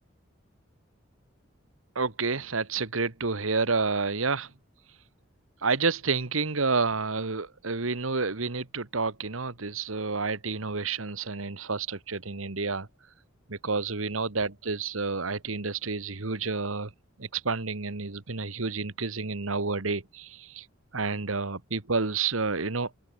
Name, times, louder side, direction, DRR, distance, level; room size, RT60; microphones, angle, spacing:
voice 1, 1.9-4.5 5.6-12.9 13.5-16.9 17.2-20.6 20.9-22.9, right 4 dB, 90° right, 1.6 m, -29 dB
head